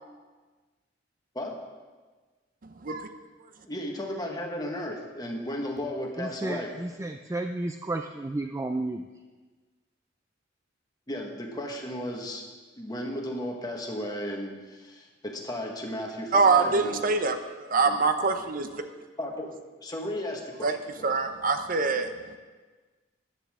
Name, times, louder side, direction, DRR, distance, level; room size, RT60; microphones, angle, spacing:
voice 1, 2.6-3.1 16.3-18.8 20.6-20.7 21.0-22.4, right 4 dB, 50° right, 8 dB, 0.7 m, -25 dB
voice 2, 3.6-6.7 11.1-12.4 12.8-17.0 17.8-18.0 19.2-19.5 19.8-20.8, left 1 dB, 20° left, 1 dB, 1.4 m, -34 dB
voice 3, 6.2-9.0, right 2 dB, 15° right, 5 dB, 0.3 m, -32 dB
14.0 x 10.0 x 3.7 m, 1.4 s
head